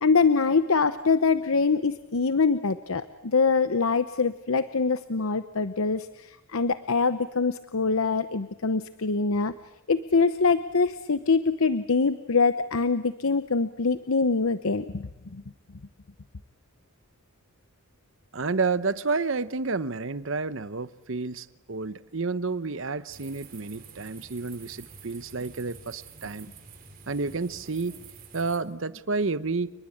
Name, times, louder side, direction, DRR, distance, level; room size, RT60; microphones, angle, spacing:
voice 1, 0.0-9.5 9.9-15.4, left 4 dB, 80° left, 12 dB, 0.8 m, -24 dB
voice 2, 18.3-26.5 27.1-28.1 28.3-29.7, right 4 dB, 65° right, 15 dB, 0.9 m, -30 dB
sound 1, 23.1-28.6, right 5 dB, 40° right, 4.1 m, -48 dB
29.5 x 20.5 x 8.7 m, 0.98 s
head